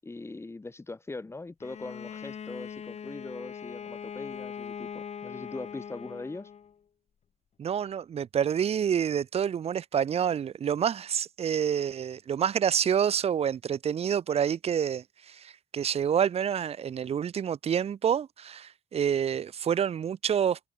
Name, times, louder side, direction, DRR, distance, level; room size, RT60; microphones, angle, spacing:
voice 1, 0.0-6.5, left 3 dB, 15° left, 6.6 m, -41 dB
Bowed string instrument, 1.6-6.7, left 7 dB, 40° left, 3.3 m, -41 dB
voice 2, 7.6-20.6, right 8 dB, 40° right, 0.8 m, -28 dB
cardioid pair, 150°, 16 cm